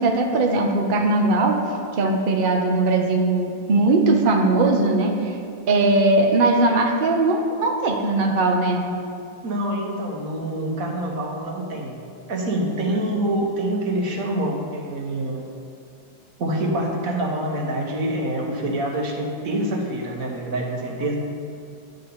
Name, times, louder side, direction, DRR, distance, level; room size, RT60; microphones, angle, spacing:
voice 1, 0.0-1.6 2.0-5.3 5.7-8.8, right 2 dB, 80° right, 2 dB, 0.4 m, -19 dB
voice 2, 9.4-12.0 12.3-15.5 16.4-21.2, right 1 dB, 55° right, 0 dB, 1.4 m, -26 dB
9.8 x 3.9 x 7.0 m, 2.5 s
omnidirectional pair, 2.0 m